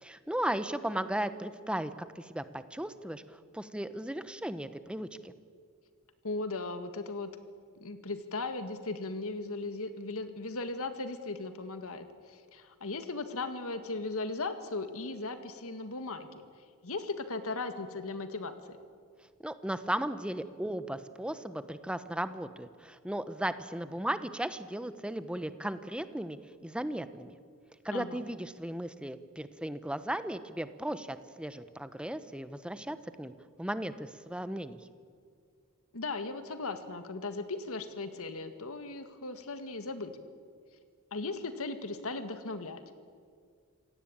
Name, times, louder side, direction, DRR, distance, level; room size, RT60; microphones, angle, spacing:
voice 1, 0.0-5.3 19.4-27.3 27.8-33.3 33.6-34.8, right 1 dB, 5° right, 12 dB, 0.9 m, -36 dB
voice 2, 6.2-7.3 7.8-16.4 16.8-18.8 27.9-28.2 35.9-40.1 41.1-42.8, left 3 dB, 70° left, 9 dB, 1.9 m, -37 dB
27.0 x 17.5 x 8.8 m, 2.1 s
head